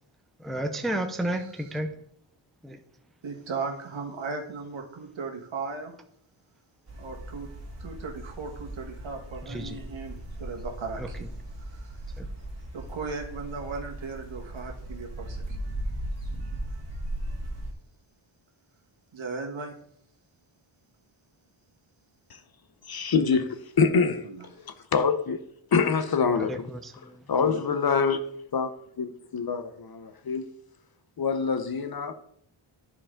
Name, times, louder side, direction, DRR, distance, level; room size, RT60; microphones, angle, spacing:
voice 1, 0.4-1.9 2.6-2.8 9.4-9.8 11.0-11.1 12.2-12.3 26.3-27.2, right 1 dB, ahead, 0.5 m, -32 dB
voice 2, 3.2-5.9 7.0-7.5 7.8-11.3 11.6-12.0 12.7-15.6 19.1-19.7 24.2-24.4 27.3-27.6, right 4 dB, 70° right, 1.6 m, -37 dB
sound 1, 6.9-17.7, right 1 dB, 30° right, 1.8 m, -37 dB
voice 3, 22.9-24.3 24.6-25.4 25.7-26.7 27.3-28.2 28.5-28.7 29.0-30.4 31.2-32.1, left 5 dB, 50° left, 0.7 m, -25 dB
11.0 x 4.8 x 3.7 m
wide cardioid pair, 110°, 49 cm